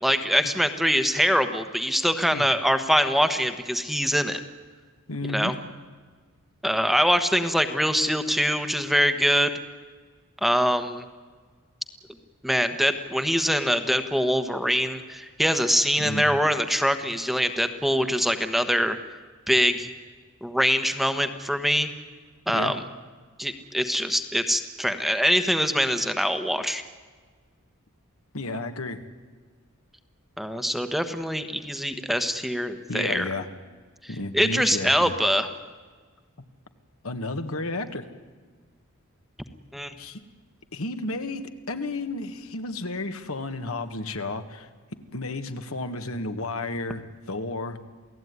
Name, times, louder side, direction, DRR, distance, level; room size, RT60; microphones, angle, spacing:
voice 1, 0.0-4.4 5.3-5.5 6.6-9.5 10.4-11.0 12.4-19.0 19.5-19.9 20.4-21.9 22.5-22.8 23.4-26.8 30.4-33.3 34.0-35.5 39.7-39.9, equal, ahead, 8 dB, 1.2 m, -24 dB
voice 2, 5.1-5.5 16.0-16.3 22.5-22.7 28.3-29.0 32.9-33.5 34.1-35.1 37.0-38.1 40.0-40.2 40.7-44.7 45.1-47.8, left 2 dB, 70° left, 7 dB, 1.8 m, -32 dB
28.5 x 17.5 x 9.6 m, 1.5 s
head